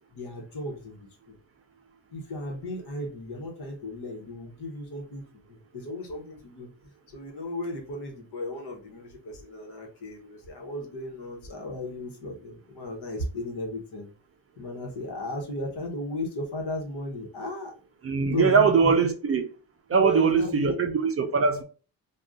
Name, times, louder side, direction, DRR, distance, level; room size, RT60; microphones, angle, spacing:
voice 1, 0.1-1.4 2.1-14.1 14.6-17.7 18.2-18.9 19.9-20.7, left 1 dB, 70° left, 1.1 m, -35 dB
voice 2, 18.0-19.5 19.9-21.6, right 5 dB, 35° right, 0.4 m, -22 dB
2.6 x 2.3 x 3.4 m
wide cardioid pair, 150°, 42 cm